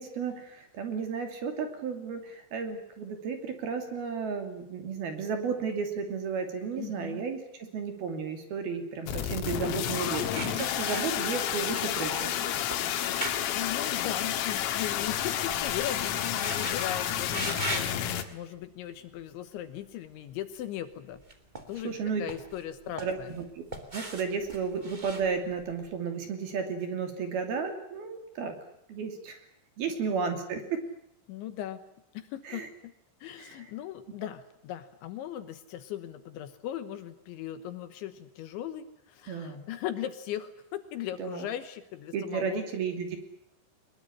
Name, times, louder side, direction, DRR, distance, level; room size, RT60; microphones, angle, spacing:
voice 1, 0.0-12.3 21.8-22.2 23.0-23.7 23.9-28.5 28.9-29.4 29.8-30.8 32.4-32.7 33.4-33.7 39.3-39.6 41.2-41.5 42.1-43.2, right 5 dB, 50° right, 6 dB, 4.3 m, -33 dB
voice 2, 6.8-7.2 13.5-21.2 21.7-23.3 31.3-31.8 32.1-32.9 33.2-42.6, left 11 dB, 75° left, 11 dB, 3.3 m, -38 dB
sound 1, 9.1-18.2, left 10 dB, 90° left, 4.5 m, -30 dB
sound 2, 10.3-11.7 12.0-14.6 14.9-16.9 17.3-18.0 18.6-18.8 21.1-22.0 22.3-23.4 23.7-25.9, right 1 dB, 25° right, 0.9 m, -39 dB
22.5 x 21.5 x 9.9 m, 0.75 s
omnidirectional pair, 6.0 m